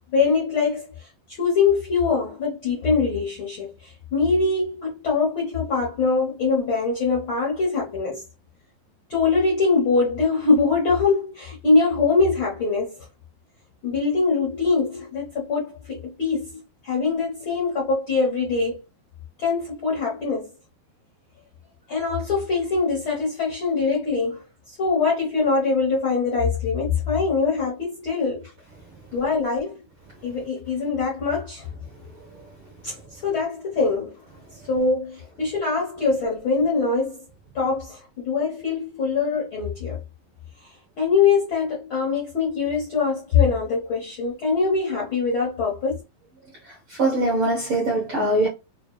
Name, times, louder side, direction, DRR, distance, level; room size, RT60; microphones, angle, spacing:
voice 1, 0.1-1.1 1.4-8.2 9.1-13.0 13.8-18.8 19.4-20.5 21.9-28.5 29.1-29.8 30.2-31.7 32.8-34.2 34.7-37.2 37.5-40.0 41.0-46.0, left 4 dB, 75° left, 1.1 m, -23 dB
voice 2, 47.0-48.5, right 2 dB, 90° right, 1.1 m, -21 dB
5.8 x 2.5 x 2.3 m
omnidirectional pair, 4.1 m